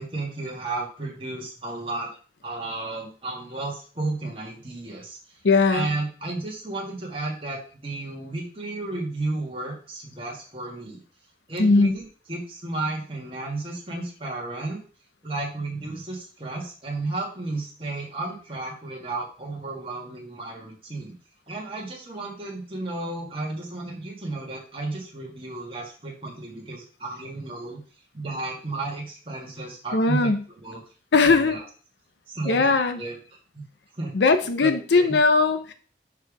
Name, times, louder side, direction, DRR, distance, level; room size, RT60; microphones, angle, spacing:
voice 1, 0.0-2.1 2.4-5.2 5.7-11.0 11.5-14.8 15.2-21.1 21.5-27.8 28.1-30.3 30.6-30.8 31.3-31.6 32.3-33.2 33.5-33.6 34.0-34.1 34.6-35.2, right 2 dB, 30° right, -3 dB, 1.6 m, -33 dB
voice 2, 5.4-5.9 11.6-11.9 29.9-30.4 31.1-31.6 32.5-33.0 34.1-35.7, left 3 dB, 80° left, 9 dB, 0.6 m, -19 dB
4.9 x 4.6 x 4.8 m, 0.39 s
head